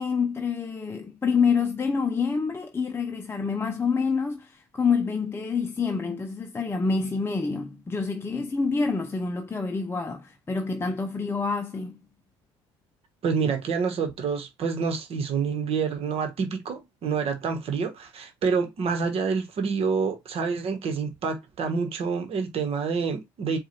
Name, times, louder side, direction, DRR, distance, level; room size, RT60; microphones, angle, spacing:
voice 1, 0.0-12.0, left 5 dB, 20° left, 0.6 m, -27 dB
voice 2, 13.2-23.6, right 5 dB, 50° right, 1.2 m, -27 dB
4.7 x 2.4 x 4.3 m
supercardioid pair, 80°, 13 cm